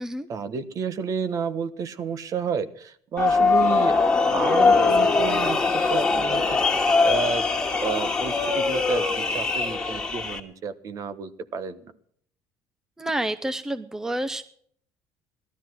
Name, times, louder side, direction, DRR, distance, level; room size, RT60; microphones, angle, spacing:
voice 1, 0.3-4.0 4.3-7.5 7.8-11.9, right 6 dB, 45° right, 12 dB, 1.2 m, -31 dB
sound 1, 3.2-10.4, left 4 dB, 10° left, 2.2 m, -22 dB
voice 2, 13.0-14.4, right 1 dB, 5° right, 12 dB, 0.8 m, -29 dB
17.5 x 13.0 x 6.2 m, 0.62 s
cardioid pair, 135°, 8 cm